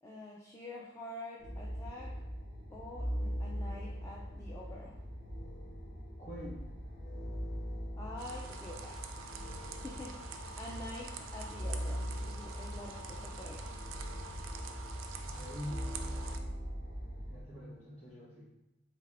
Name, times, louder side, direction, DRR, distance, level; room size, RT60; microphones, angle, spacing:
voice 1, 0.0-2.1 2.7-5.0 8.0-9.4 9.7-13.8, left 1 dB, 15° left, -4 dB, 0.3 m, -47 dB
sound 1, 1.4-17.4, equal, 60° left, 1.4 m, -41 dB
voice 2, 6.2-6.6 15.2-15.9 17.3-18.5, equal, 35° left, -7 dB, 1.4 m, -45 dB
sound 2, 8.2-16.4, right 4 dB, 85° right, 0.3 m, -47 dB
3.4 x 2.7 x 3.4 m, 0.98 s
head